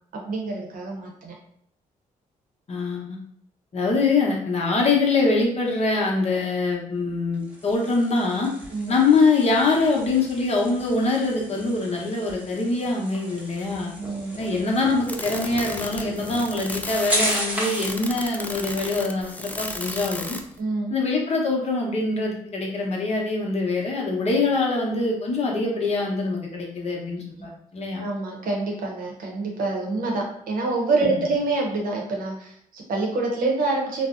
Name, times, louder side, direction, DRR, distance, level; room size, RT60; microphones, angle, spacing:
voice 1, 0.1-1.3 8.7-9.0 14.0-14.5 20.6-20.9 28.0-34.1, right 3 dB, 70° right, -1 dB, 0.7 m, -26 dB
voice 2, 2.7-3.2 3.7-8.5 8.9-13.9 14.4-20.4 20.9-28.0 31.0-31.1, left 3 dB, 45° left, -2 dB, 0.7 m, -24 dB
sound 1, 7.3-18.0, equal, 10° right, 0.9 m, -34 dB
sound 2, 15.0-20.6, left 1 dB, 10° left, 0.3 m, -34 dB
2.6 x 2.0 x 2.4 m, 0.67 s
supercardioid pair, 60°, 15 cm